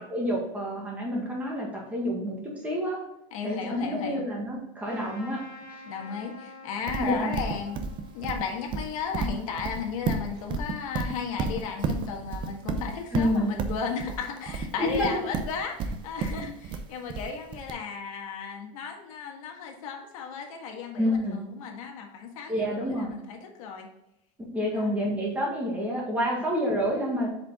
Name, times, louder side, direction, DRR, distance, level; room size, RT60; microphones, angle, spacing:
voice 1, 0.0-2.4 2.6-3.0 3.4-5.4 7.0-7.3 13.1-13.5 14.8-15.2 21.0-21.4 22.5-23.1 24.5-27.3, equal, 10° right, -3 dB, 1.8 m, -28 dB
voice 2, 3.3-4.2 5.8-7.8 8.1-23.9 24.7-24.9, left 6 dB, 85° left, 2 dB, 1.7 m, -34 dB
Trumpet, 4.8-9.9, left 2 dB, 25° left, 2.1 m, -49 dB
Livestock farm animals working animals, 6.9-17.7, right 5 dB, 25° right, 0.6 m, -32 dB
7.4 x 5.0 x 3.6 m, 0.87 s
supercardioid pair, 175°, 17 cm